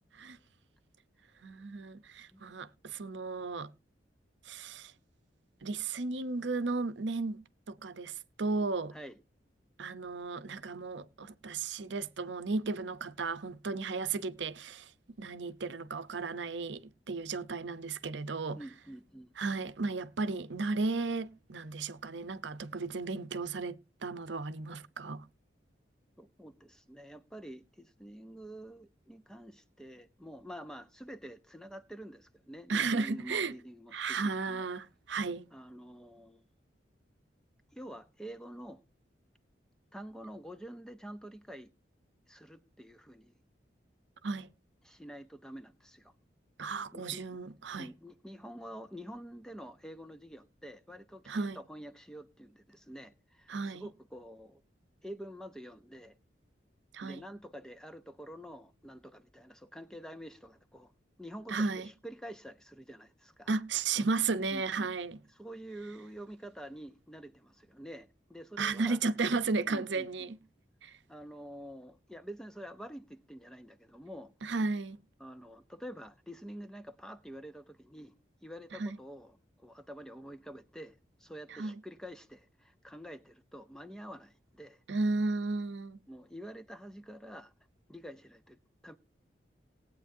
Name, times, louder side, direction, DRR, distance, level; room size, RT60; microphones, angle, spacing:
voice 1, 1.4-3.7 4.4-4.9 5.6-7.4 7.7-8.9 9.8-14.9 15.2-18.6 19.4-25.3 32.7-33.5 33.9-35.5 44.2-44.5 46.6-47.9 51.3-51.6 53.5-53.8 56.9-57.2 61.5-61.9 63.5-65.2 68.6-70.4 70.8-71.0 74.4-75.0 78.7-79.0 81.5-81.8 84.9-86.0, right 4 dB, 75° right, 0.7 m, -34 dB
voice 2, 18.5-19.3 26.2-34.7 35.5-36.4 37.7-38.8 39.9-41.7 42.3-43.3 44.8-46.1 46.9-47.2 47.8-54.6 55.0-56.1 57.0-60.9 61.2-63.5 64.5-64.9 65.3-69.0 69.6-70.3 71.1-74.3 75.2-78.1 78.4-84.8 86.1-87.5 87.9-88.6 88.8-89.0, equal, 5° left, 0.6 m, -47 dB
19.0 x 8.5 x 2.7 m
head